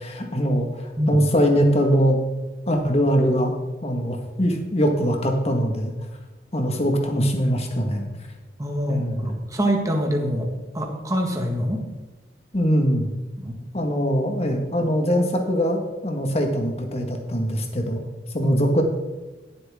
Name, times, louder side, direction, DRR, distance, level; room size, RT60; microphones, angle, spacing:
voice 1, 0.0-2.2 2.7-3.5 3.8-5.9 6.5-8.1 8.9-9.3 12.5-13.1 13.7-18.0 18.3-18.8, equal, 35° left, 3 dB, 1.6 m, -22 dB
voice 2, 8.6-11.9 13.4-13.6 18.4-18.6, equal, 20° right, 2 dB, 1.7 m, -25 dB
17.0 x 7.8 x 3.7 m, 1.2 s
head